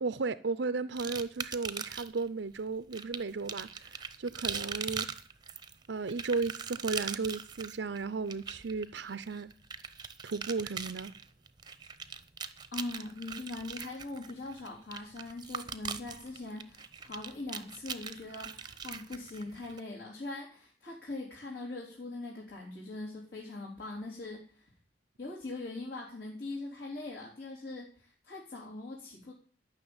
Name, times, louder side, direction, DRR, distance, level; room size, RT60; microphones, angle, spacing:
voice 1, 0.0-5.1 5.9-9.5 10.2-11.1, right 4 dB, 70° right, 0.6 m, -35 dB
sound 1, 1.0-2.2 2.9-19.8, right 6 dB, 25° right, 0.8 m, -41 dB
voice 2, 12.7-24.7 25.2-29.3, left 2 dB, 60° left, 3.7 m, -41 dB
13.0 x 6.3 x 8.7 m
head